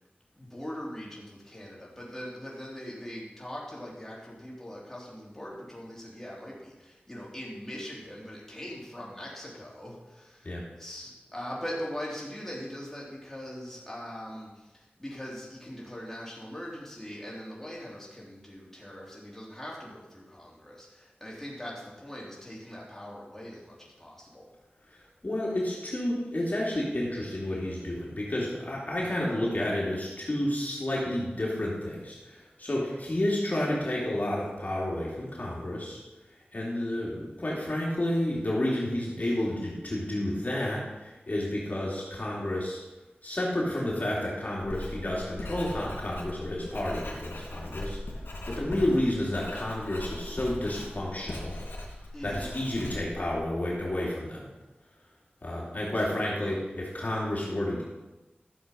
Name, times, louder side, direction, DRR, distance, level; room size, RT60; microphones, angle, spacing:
voice 1, 0.3-24.5 39.2-39.4 52.1-52.5, equal, 10° left, -5 dB, 3.5 m, -41 dB
voice 2, 24.9-36.0 36.5-42.8 43.2-48.0 48.5-51.5 52.2-54.5 55.4-57.8, left 1 dB, 45° left, -5 dB, 3.0 m, -30 dB
Writing, 44.6-54.0, left 1 dB, 80° left, 2.8 m, -40 dB
13.0 x 7.1 x 5.3 m, 1.1 s
wide cardioid pair, 60°, 4 cm